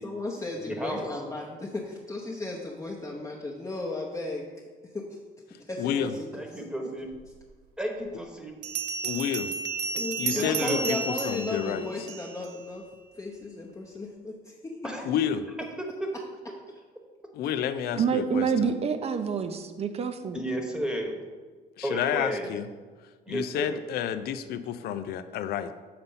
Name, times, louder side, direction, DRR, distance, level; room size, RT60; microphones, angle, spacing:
voice 1, 0.0-4.5 4.8-5.2 5.6-6.7 10.0-12.8 13.1-15.2 17.7-17.8, left 2 dB, 20° left, -3 dB, 0.9 m, -35 dB
voice 2, 0.6-1.1 6.3-7.1 7.8-8.5 9.9-10.0 10.3-10.9 14.8-15.1 15.8-16.1 20.3-21.2 21.8-22.5 23.3-23.8, equal, 5° right, 2 dB, 1.2 m, -32 dB
voice 3, 5.8-6.1 9.0-9.5 10.2-11.9 15.0-15.4 17.3-18.7 21.8-22.7 23.3-25.7, left 9 dB, 70° left, 11 dB, 0.5 m, -30 dB
Bell, 7.4-7.5 8.6-12.5, right 5 dB, 85° right, 0.6 m, -32 dB
voice 4, 18.0-20.4, right 6 dB, 35° right, 8 dB, 0.7 m, -27 dB
6.8 x 4.0 x 5.6 m, 1.5 s
cardioid pair, 110°, 17 cm